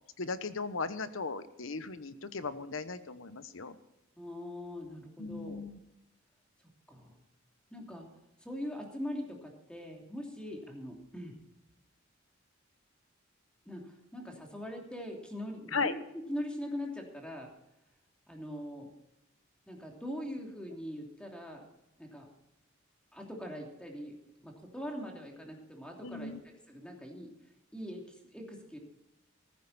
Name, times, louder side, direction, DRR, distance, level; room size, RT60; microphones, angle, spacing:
voice 1, 0.2-3.8 5.2-5.8 15.7-15.9 26.0-26.4, left 4 dB, 70° left, 12 dB, 1.1 m, -37 dB
voice 2, 4.2-5.6 6.9-7.2 7.7-8.1 8.4-11.4 13.6-17.5 18.3-18.9 19.7-21.7 22.0-22.3 23.1-27.3 27.7-28.8, equal, 5° left, 1 dB, 3.0 m, -42 dB
15.0 x 14.5 x 4.2 m, 0.88 s
head